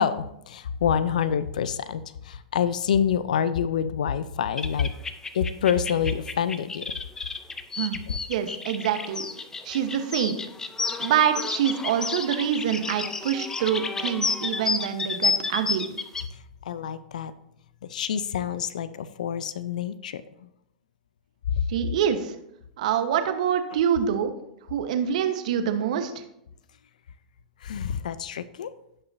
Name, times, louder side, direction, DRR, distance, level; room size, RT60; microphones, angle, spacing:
voice 1, 0.0-4.9 5.3-6.9 8.1-8.2 16.3-17.3 17.9-20.5 21.5-21.6 27.6-28.7, left 8 dB, 75° left, 14 dB, 0.5 m, -27 dB
sound 1, 4.6-16.2, left 4 dB, 15° left, 0.6 m, -31 dB
voice 2, 8.3-9.3 9.6-10.3 11.0-15.9 21.7-22.3 22.8-24.3 24.7-26.2, right 9 dB, 65° right, 8 dB, 1.1 m, -25 dB
16.5 x 5.7 x 2.7 m, 0.79 s
hypercardioid pair, 115°, 4 cm